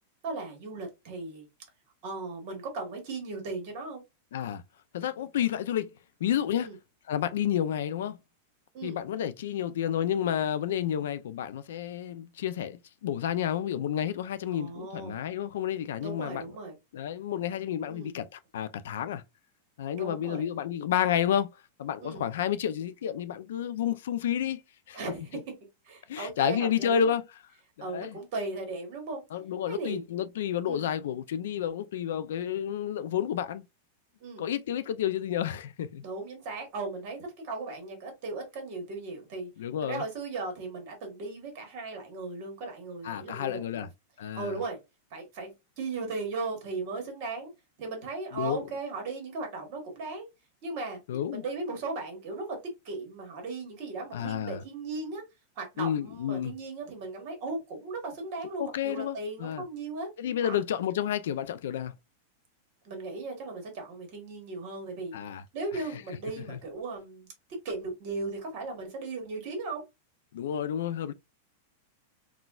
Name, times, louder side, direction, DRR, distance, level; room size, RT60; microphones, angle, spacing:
voice 1, 0.2-1.5 2.0-4.0 6.6-6.8 8.7-9.0 14.5-15.2 16.0-16.7 17.9-18.1 20.0-20.5 22.0-22.2 24.9-25.6 25.8-27.1 27.8-29.2 29.7-30.0 30.6-30.9 34.2-34.4 36.0-39.5 39.8-43.9 44.3-44.8 45.1-47.5 47.8-50.3 50.6-51.0 51.3-55.2 55.6-60.1 60.4-60.6 62.8-65.2 65.5-69.8, right 3 dB, 40° right, 1.4 m, -37 dB
voice 2, 4.3-4.6 4.9-5.9 6.2-6.7 7.1-8.2 8.8-16.4 16.9-18.3 18.5-19.2 19.8-21.5 21.8-24.6 24.9-25.0 26.1-27.2 27.8-28.2 29.3-33.6 34.4-36.0 39.6-40.0 43.0-43.9 44.2-44.6 48.3-48.6 51.1-51.4 54.1-54.6 55.8-56.5 58.6-59.6 60.2-61.9 65.1-65.4 66.5-66.6 70.3-71.1, left 9 dB, 70° left, 0.3 m, -30 dB
4.1 x 2.2 x 2.3 m
supercardioid pair, 170°, 0 cm